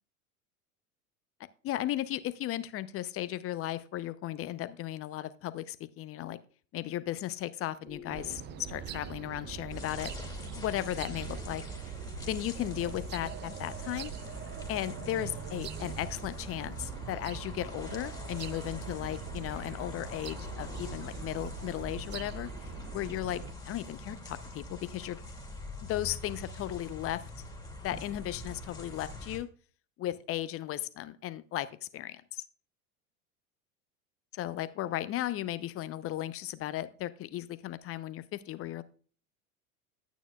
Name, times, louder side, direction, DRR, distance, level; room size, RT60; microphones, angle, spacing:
voice 1, 1.6-6.4 6.7-8.4 8.7-10.1 10.4-11.6 12.3-14.1 14.7-25.2 25.8-27.2 27.8-29.5 30.0-31.7 31.9-32.4 34.3-38.8, left 13 dB, 30° left, 14 dB, 0.7 m, -36 dB
sound 1, 7.8-10.9 13.3-16.0, right 3 dB, 45° right, 4.6 m, -51 dB
sound 2, 8.1-23.5, right 9 dB, 25° right, 0.5 m, -43 dB
sound 3, 9.7-29.4, left 3 dB, 10° left, 2.4 m, -44 dB
11.0 x 9.1 x 2.4 m, 0.42 s
figure-of-eight pair, 80°, 44 cm